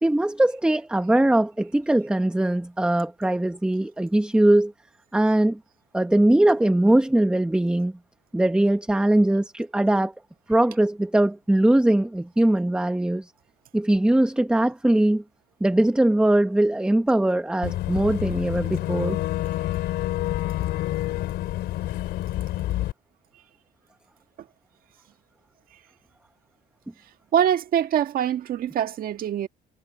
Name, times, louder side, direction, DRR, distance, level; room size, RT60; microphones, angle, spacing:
voice 1, 0.0-4.7 5.1-5.6 5.9-7.9 8.3-10.1 10.5-13.3 13.7-15.2 15.6-19.2, right 1 dB, 5° right, 1.1 m, -21 dB
Boat Water vehicle / Engine, 17.6-22.9, left 14 dB, 80° left, 3.6 m, -28 dB
voice 2, 27.3-29.5, right 9 dB, 60° right, 1.7 m, -23 dB
cardioid pair, 110°, 17 cm